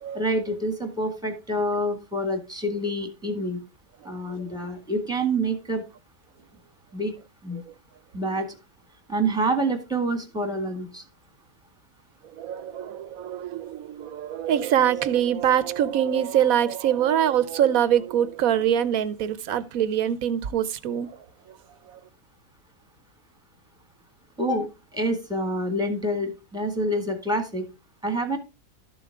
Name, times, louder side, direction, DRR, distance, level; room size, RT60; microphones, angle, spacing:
voice 1, 0.1-3.6 4.0-5.8 6.9-7.1 7.4-7.6 8.1-8.6 9.1-11.0 24.4-27.6 28.0-28.4, right 1 dB, 5° right, 1.8 m, -27 dB
voice 2, 12.4-21.1 21.9-22.0, right 10 dB, 65° right, 1.2 m, -24 dB
12.5 x 7.0 x 3.6 m
omnidirectional pair, 1.6 m